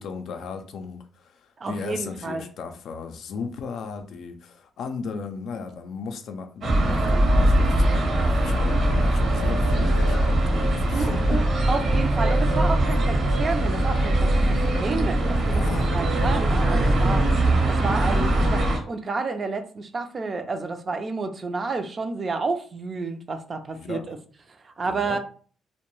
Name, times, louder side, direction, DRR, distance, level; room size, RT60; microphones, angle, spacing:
voice 1, 0.0-11.4 14.4-14.5 15.4-16.0 23.7-24.1 24.9-25.2, left 5 dB, 70° left, 0.4 m, -36 dB
voice 2, 1.6-2.4 10.9-14.3 14.6-17.3 17.7-24.2 24.6-25.2, right 3 dB, 40° right, 0.4 m, -30 dB
sound 1, 6.6-18.8, right 1 dB, 55° right, 0.8 m, -21 dB
2.2 x 2.1 x 3.0 m
cardioid pair, 90°, 0 cm